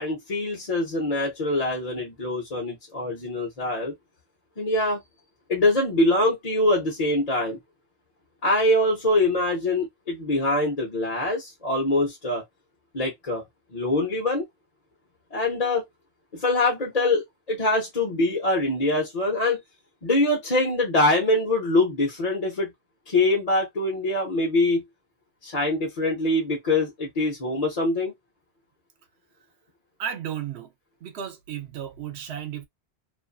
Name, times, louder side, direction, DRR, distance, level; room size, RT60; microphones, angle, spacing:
voice 1, 0.0-3.9 4.6-5.0 5.5-7.6 8.4-12.4 12.9-13.4 13.7-14.4 15.3-15.8 16.3-19.6 20.0-22.7 23.1-24.8 25.4-28.1, left 2 dB, 40° left, 0.8 m, -24 dB
voice 2, 30.0-30.7 31.0-32.7, right 9 dB, 85° right, 0.9 m, -34 dB
2.5 x 2.4 x 2.3 m
omnidirectional pair, 1.1 m